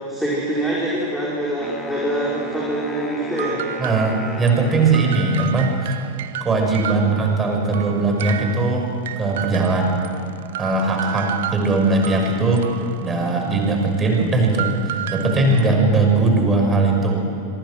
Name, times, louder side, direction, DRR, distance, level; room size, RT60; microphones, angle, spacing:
voice 1, 0.1-3.7, right 1 dB, ahead, -7 dB, 5.4 m, -24 dB
Wind instrument woodwind instrument, 1.6-5.8, left 1 dB, 15° left, 2.5 m, -35 dB
sound 1, 3.3-7.5 7.7-15.7, right 11 dB, 55° right, 1.2 m, -32 dB
voice 2, 3.8-6.0 6.4-8.9 9.2-10.0 10.6-12.6 13.0-17.2, right 3 dB, 20° right, 1 dB, 6.0 m, -19 dB
26.5 x 24.0 x 6.4 m, 2.6 s
figure-of-eight pair, 90°, 0 cm